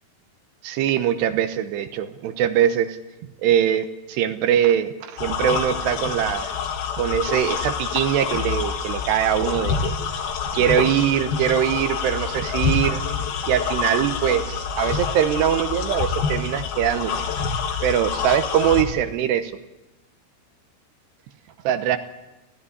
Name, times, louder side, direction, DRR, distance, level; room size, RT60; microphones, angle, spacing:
voice 1, 0.6-3.0 3.4-6.5 7.0-9.9 10.5-13.0 13.5-17.1 17.8-19.5 21.6-22.0, right 10 dB, 75° right, 9 dB, 2.9 m, -22 dB
sound 1, 5.2-18.8, left 6 dB, 65° left, 3.2 m, -27 dB
18.5 x 15.5 x 10.0 m, 1.0 s
omnidirectional pair, 5.3 m